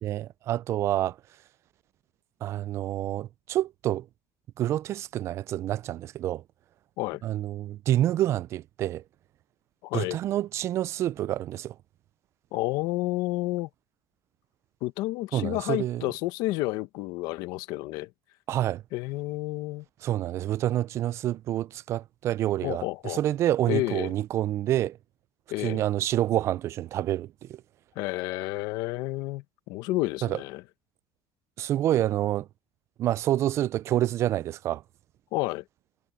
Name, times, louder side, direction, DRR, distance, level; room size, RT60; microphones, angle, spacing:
voice 1, 0.0-1.2 2.4-4.1 4.6-6.4 7.2-9.0 9.9-11.7 15.3-16.0 18.5-18.8 20.0-25.0 25.6-27.6 30.2-30.4 31.6-32.5 33.0-34.8, right 13 dB, 40° right, 0.3 m, -28 dB
voice 2, 9.8-10.2 12.5-13.7 14.8-18.1 18.9-19.8 22.6-23.2 23.7-24.1 25.5-25.8 28.0-30.6 35.3-35.6, left 19 dB, 70° left, 1.0 m, -30 dB
cardioid pair, 140°, 7 cm